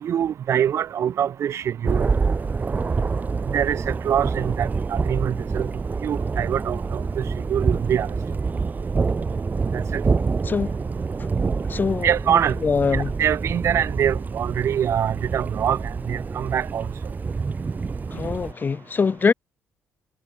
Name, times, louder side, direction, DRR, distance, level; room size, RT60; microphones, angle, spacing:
voice 1, 0.0-2.1 3.5-5.7 6.0-8.1 9.7-10.0 12.0-12.6 12.9-16.9, right 9 dB, 60° right, 1.9 m, -24 dB
Thunder, 1.8-18.5, right 4 dB, 30° right, 3.9 m, -26 dB
voice 2, 10.4-10.8 11.7-13.1 18.1-19.3, left 5 dB, 35° left, 7.2 m, -23 dB
cardioid pair, 80°, 5 cm